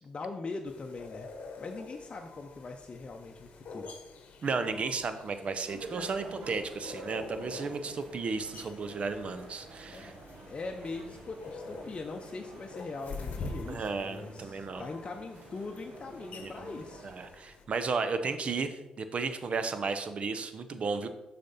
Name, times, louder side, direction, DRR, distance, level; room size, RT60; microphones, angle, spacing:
voice 1, 0.0-1.3 1.6-3.9 9.9-10.2 10.5-17.2, left 3 dB, 45° left, 2 dB, 0.6 m, -41 dB
sound 1, 0.6-17.6, left 3 dB, 70° left, 0.9 m, -46 dB
voice 2, 4.4-10.1 13.7-14.9 16.4-16.5 17.0-21.1, right 4 dB, 55° right, 10 dB, 0.7 m, -34 dB
sound 2, 5.7-17.3, right 3 dB, 70° right, 1.0 m, -49 dB
6.4 x 4.2 x 4.1 m, 1.1 s
supercardioid pair, 50°, 2 cm